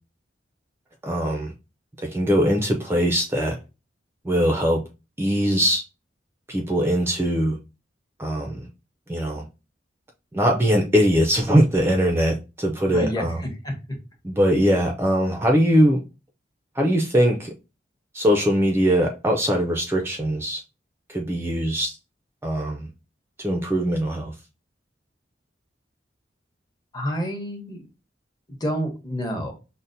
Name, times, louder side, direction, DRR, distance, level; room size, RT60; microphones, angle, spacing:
voice 1, 1.0-1.5 2.0-3.6 4.2-4.8 5.2-5.8 6.5-7.6 8.2-8.7 9.1-9.5 10.3-13.4 14.2-16.0 16.8-17.5 18.1-20.6 21.1-22.0 22.4-22.9 23.4-24.3, equal, 15° right, 0.4 m, -21 dB
voice 2, 12.9-13.7 26.9-27.8 28.5-29.5, equal, 20° left, 0.9 m, -29 dB
5.5 x 2.1 x 2.6 m
head